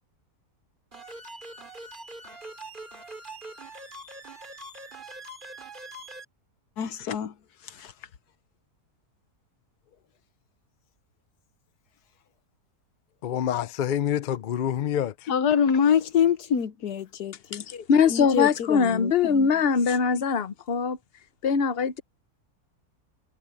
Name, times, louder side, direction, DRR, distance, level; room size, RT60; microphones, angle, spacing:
sound 1, 0.9-6.3, right 2 dB, 30° right, 3.1 m, -43 dB
voice 1, 6.8-7.3 7.6-7.9 15.3-17.6 18.1-19.5 20.1-20.2, left 8 dB, 90° left, 1.6 m, -25 dB
voice 2, 13.2-15.3, left 10 dB, 70° left, 0.4 m, -27 dB
voice 3, 17.5-21.0 21.4-22.0, left 6 dB, 45° left, 1.0 m, -22 dB
omnidirectional pair, 1.6 m